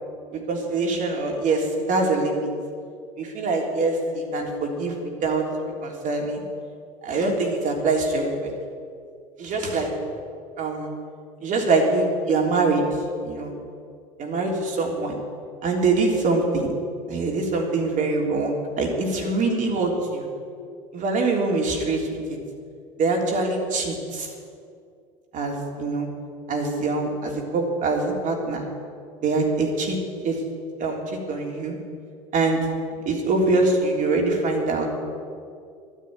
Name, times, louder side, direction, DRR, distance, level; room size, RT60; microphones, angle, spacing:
voice 1, 0.3-2.5 3.2-5.5 5.8-6.4 7.0-8.5 9.4-9.9 10.6-10.9 11.4-12.9 13.2-13.5 14.2-15.2 15.6-16.7 17.1-20.2 20.9-22.4 23.0-24.3 25.3-26.1 26.5-28.7 29.2-30.0 30.2-30.4 30.8-31.8 32.3-32.6 33.0-34.9, right 3 dB, 50° right, 1 dB, 3.4 m, -24 dB
12.0 x 10.5 x 9.5 m, 2.3 s
hypercardioid pair, 80°, 17 cm